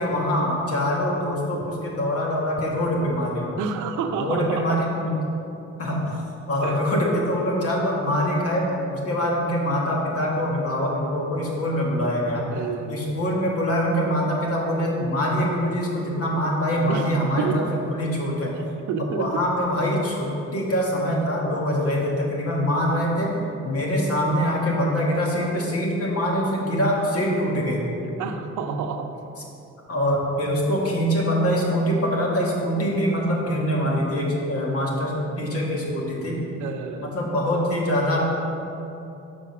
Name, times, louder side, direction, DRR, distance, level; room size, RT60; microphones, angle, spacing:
voice 1, 0.0-3.5 4.2-5.1 5.8-6.0 6.5-8.6 8.9-12.5 12.9-17.6 17.9-18.5 19.1-23.3 23.6-27.9 29.9-36.4 37.0-38.3, equal, 50° left, -2 dB, 1.9 m, -24 dB
voice 2, 3.6-4.8 6.6-6.8 12.4-13.1 16.9-17.7 18.5-19.4 28.0-29.1 34.2-34.3 36.6-37.1, right 5 dB, 80° right, 6 dB, 0.7 m, -29 dB
7.0 x 5.1 x 5.9 m, 2.8 s
cardioid pair, 90°, 30 cm